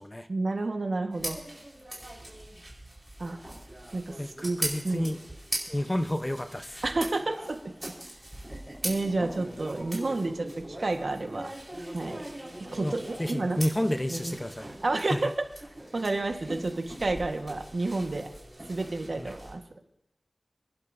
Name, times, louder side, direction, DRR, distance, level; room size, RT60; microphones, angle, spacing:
voice 1, 0.3-1.4 3.2-3.4 3.9-4.6 4.8-5.1 6.8-7.7 8.8-11.5 11.9-12.2 12.6-13.6 14.1-14.3 14.8-15.3 15.9-18.3 18.7-19.6, right 2 dB, 55° right, 5 dB, 1.4 m, -30 dB
sound 1, 1.1-19.5, right 1 dB, 15° right, 4.5 m, -40 dB
voice 2, 4.2-5.2 5.7-6.8 12.8-12.9 13.2-14.7 15.1-15.2 19.2-19.3, left 1 dB, 15° left, 8 dB, 0.8 m, -30 dB
29.5 x 11.5 x 2.7 m, 0.79 s
wide cardioid pair, 80°, 0 cm